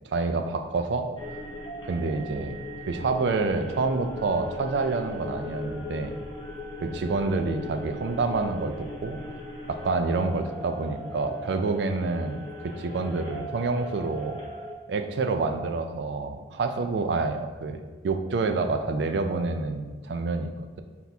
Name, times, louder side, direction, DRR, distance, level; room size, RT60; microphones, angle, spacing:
voice 1, 0.0-1.1 1.9-2.6 2.9-6.1 6.8-9.2 9.7-14.4 14.9-20.5, right 3 dB, 75° right, 6 dB, 0.4 m, -28 dB
sound 1, 1.2-14.7, left 1 dB, 25° left, 0.6 m, -39 dB
4.0 x 2.8 x 3.4 m, 1.3 s
head